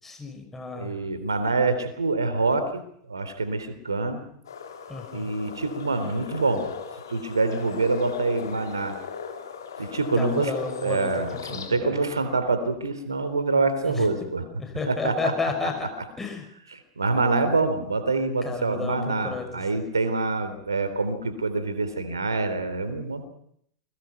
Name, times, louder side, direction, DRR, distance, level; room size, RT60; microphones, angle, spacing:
voice 1, 0.0-0.9 4.9-5.3 10.2-11.4 11.7-12.0 13.8-14.1 14.6-15.9 16.2-16.4 18.4-19.5, left 4 dB, 15° left, 4 dB, 6.1 m, -32 dB
voice 2, 0.7-2.8 3.1-4.2 5.1-6.6 7.1-8.9 9.8-10.5 10.8-14.5 14.9-15.3 16.7-23.3, right 3 dB, 80° right, 10 dB, 3.4 m, -26 dB
sound 1, 4.4-11.7, left 6 dB, 70° left, 3.6 m, -37 dB
28.5 x 21.5 x 5.9 m, 0.69 s
figure-of-eight pair, 90°, 2 cm